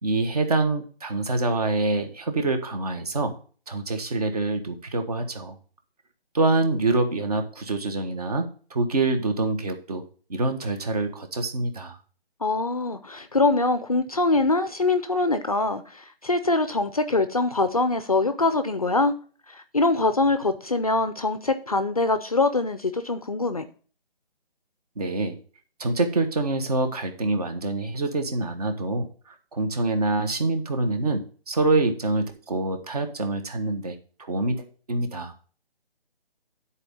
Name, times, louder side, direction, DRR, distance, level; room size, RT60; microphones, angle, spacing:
voice 1, 0.0-3.3 3.7-5.6 6.3-10.0 10.3-12.0 25.0-25.4 25.8-35.3, right 2 dB, 40° right, 6 dB, 1.3 m, -26 dB
voice 2, 12.4-19.1 19.5-23.7, left 3 dB, 40° left, 10 dB, 0.5 m, -23 dB
9.8 x 4.3 x 5.3 m, 0.40 s
hypercardioid pair, 170°, 30 cm